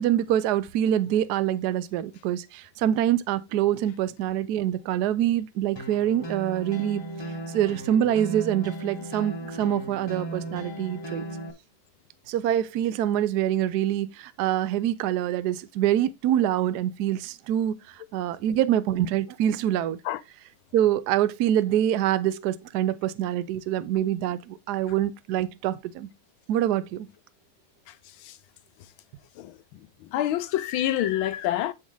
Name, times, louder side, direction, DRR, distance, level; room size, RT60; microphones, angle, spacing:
voice 1, 0.0-7.0 7.5-11.3 12.3-17.8 18.1-20.0 20.7-26.1 26.5-27.1, right 11 dB, 75° right, 0.9 m, -25 dB
sound 1, 5.8-11.5, right 1 dB, 20° left, 0.7 m, -36 dB
voice 2, 30.1-31.7, left 12 dB, 75° left, 1.4 m, -26 dB
7.3 x 5.2 x 3.8 m
omnidirectional pair, 2.4 m